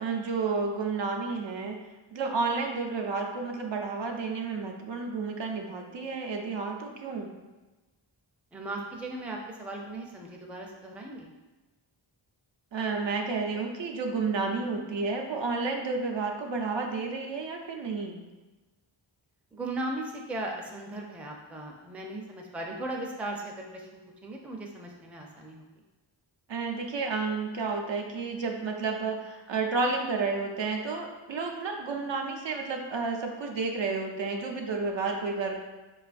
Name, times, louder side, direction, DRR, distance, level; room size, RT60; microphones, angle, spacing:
voice 1, 0.0-1.8 2.1-7.3 12.7-18.2 26.5-35.6, right 4 dB, 65° right, 2 dB, 0.6 m, -31 dB
voice 2, 8.5-11.3 19.5-25.7, right 1 dB, 5° right, 0 dB, 0.4 m, -37 dB
4.5 x 2.3 x 2.4 m, 1.2 s
wide cardioid pair, 60°, 47 cm